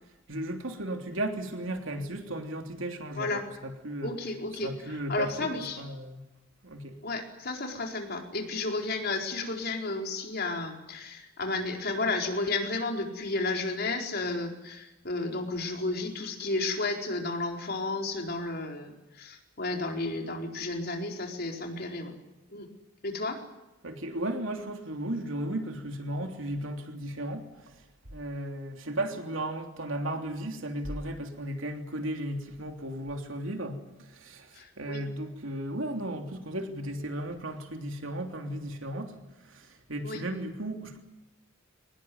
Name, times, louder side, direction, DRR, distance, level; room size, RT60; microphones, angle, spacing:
voice 1, 0.3-4.1 4.6-5.5 5.8-6.2 6.6-7.0 23.8-27.8 28.1-41.0, right 1 dB, 85° right, 4 dB, 3.2 m, -35 dB
voice 2, 4.0-5.8 7.0-22.2 22.5-22.7 23.0-23.4 34.5-35.1 40.0-40.2, left 3 dB, 55° left, 2 dB, 4.4 m, -32 dB
24.5 x 20.0 x 9.5 m, 0.96 s
head